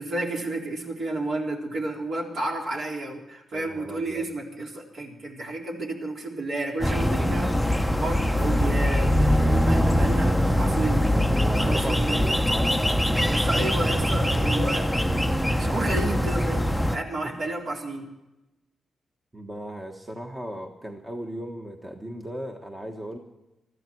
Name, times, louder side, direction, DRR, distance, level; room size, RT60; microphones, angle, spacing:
voice 1, 0.0-7.5 8.0-11.1 11.5-12.3 13.2-14.9 15.5-18.1, right 2 dB, 55° right, 0 dB, 4.0 m, -31 dB
voice 2, 3.5-4.3 11.6-13.0 17.2-17.3 19.3-23.2, right 1 dB, 15° right, 2 dB, 1.4 m, -37 dB
sound 1, 6.8-17.0, equal, ahead, 0.8 m, -22 dB
21.0 x 14.0 x 4.6 m, 0.98 s
wide cardioid pair, 125°, 0 cm